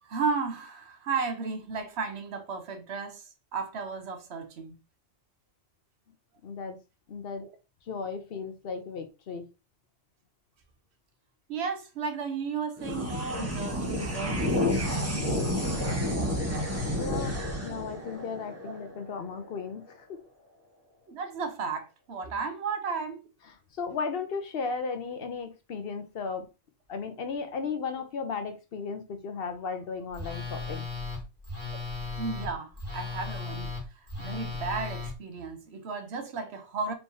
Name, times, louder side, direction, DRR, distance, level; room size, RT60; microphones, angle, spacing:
voice 1, 0.0-4.8 7.4-7.5 11.5-14.6 18.6-18.7 21.1-23.2 32.2-36.9, right 5 dB, 65° right, 1.0 m, -34 dB
voice 2, 6.4-6.8 7.1-7.5 7.9-9.5 17.0-17.4 17.6-20.2 23.8-26.5 26.9-30.9, left 5 dB, 55° left, 0.9 m, -35 dB
sound 1, 12.8-19.5, left 1 dB, 15° right, 1.0 m, -30 dB
Telephone, 30.1-35.1, left 4 dB, 35° right, 1.6 m, -36 dB
4.5 x 3.4 x 2.7 m
omnidirectional pair, 1.2 m